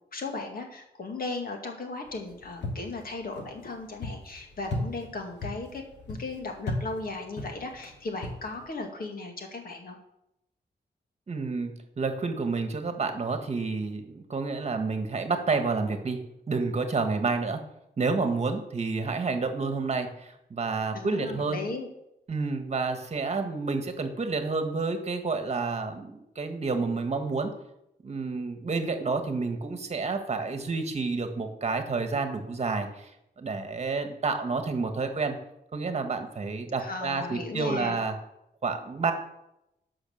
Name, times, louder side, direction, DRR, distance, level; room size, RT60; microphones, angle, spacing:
voice 1, 0.1-10.0 20.9-21.9 36.8-38.0, left 3 dB, 55° left, 3 dB, 2.1 m, -36 dB
sound 1, 2.1-8.8, left 1 dB, 85° left, 2.6 m, -38 dB
voice 2, 11.3-17.6 18.0-21.6 22.3-27.5 28.0-33.1 33.4-35.4 35.7-38.1 38.6-39.1, right 4 dB, 40° right, 7 dB, 1.5 m, -29 dB
11.5 x 5.8 x 7.1 m, 0.84 s
wide cardioid pair, 135°, 18 cm